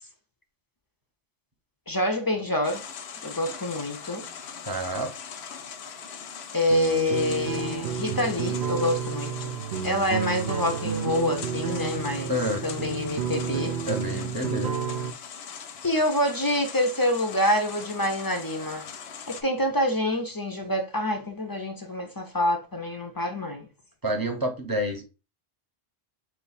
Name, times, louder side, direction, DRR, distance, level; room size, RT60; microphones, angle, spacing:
voice 1, 1.9-2.8 3.2-4.3 6.5-9.5 9.8-12.3 12.6-13.8 15.8-18.9 19.3-23.7, left 1 dB, 30° left, 0.4 m, -26 dB
sound 1, 2.6-19.4, left 7 dB, 90° left, 0.9 m, -41 dB
voice 2, 4.6-5.1 12.3-12.6 13.9-14.7 24.0-25.0, equal, 25° right, 0.7 m, -28 dB
sound 2, 6.7-15.1, right 7 dB, 80° right, 0.8 m, -31 dB
3.8 x 2.3 x 4.0 m
omnidirectional pair, 1.1 m